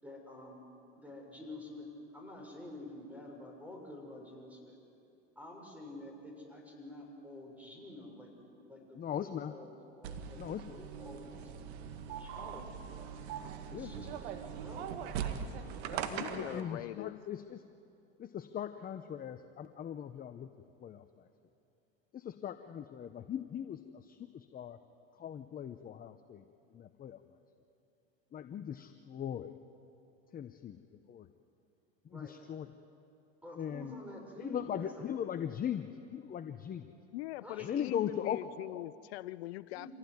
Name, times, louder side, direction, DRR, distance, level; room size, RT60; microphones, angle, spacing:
voice 1, 0.0-0.6 1.0-4.8 5.3-10.4 10.7-11.5 12.2-12.7 13.7-14.3 14.6-14.9 32.1-32.4 33.4-35.1 37.4-37.7 39.7-39.9, left 1 dB, 5° right, 0 dB, 6.5 m, -49 dB
voice 2, 8.9-9.5 10.4-10.6 13.7-13.9 15.9-17.6 18.2-20.5 20.8-21.0 22.1-24.8 25.2-26.4 26.7-27.2 28.3-29.6 30.3-30.8 31.1-31.3 32.1-32.7 33.6-33.9 34.4-36.9 37.6-38.4, left 9 dB, 25° left, 9 dB, 0.8 m, -39 dB
sound 1, 10.0-16.6, right 8 dB, 75° right, 1.8 m, -41 dB
voice 3, 16.2-17.2 37.1-39.9, left 18 dB, 75° left, 18 dB, 0.5 m, -42 dB
26.5 x 16.5 x 9.6 m, 2.7 s
supercardioid pair, 105°, 33 cm